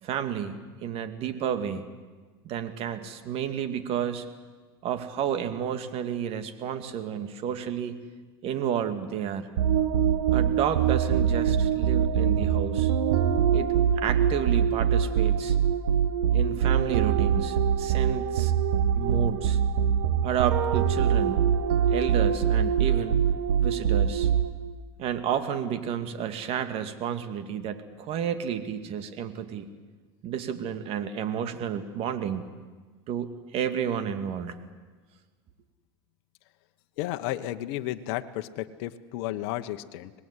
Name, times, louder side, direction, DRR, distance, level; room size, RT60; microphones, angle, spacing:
voice 1, 0.0-1.8 2.4-4.3 4.8-8.0 8.4-9.5 10.3-12.9 13.5-13.7 14.0-15.6 16.3-18.5 19.0-19.6 20.2-21.4 21.9-23.2 23.6-24.3 25.0-29.7 30.2-32.4 33.1-34.6, right 8 dB, 50° right, 9 dB, 2.3 m, -31 dB
sound 1, 9.6-24.7, right 8 dB, 80° right, 1.5 m, -24 dB
voice 2, 37.0-40.1, left 14 dB, 65° left, 7 dB, 1.3 m, -33 dB
25.0 x 20.0 x 9.9 m, 1.3 s
supercardioid pair, 120°, 13 cm